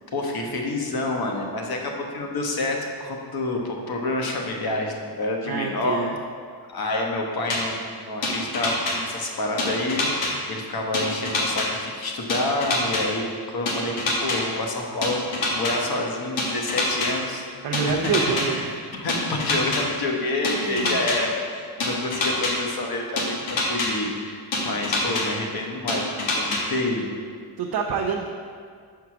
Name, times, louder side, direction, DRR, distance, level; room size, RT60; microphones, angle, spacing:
voice 1, 0.1-6.0 6.7-15.2 15.5-17.5 17.8-18.1 18.5-18.6 19.0-27.1, left 2 dB, 55° left, 1 dB, 1.1 m, -28 dB
voice 2, 5.5-6.1 17.6-18.8 20.5-21.1 27.6-28.3, right 5 dB, 60° right, -1 dB, 0.6 m, -27 dB
sound 1, 7.5-7.6 8.2-8.9 9.6-10.3 10.9-11.7 12.3-13.0 13.7-14.4 15.0-15.7 16.4-17.1 17.7-18.4 19.1-19.8 20.4-21.2 21.8-22.5 23.2-23.9 24.5-25.2 25.9-26.6, left 3 dB, 85° left, 1.4 m, -25 dB
5.2 x 4.7 x 5.9 m, 2.1 s
cardioid pair, 115°, 43 cm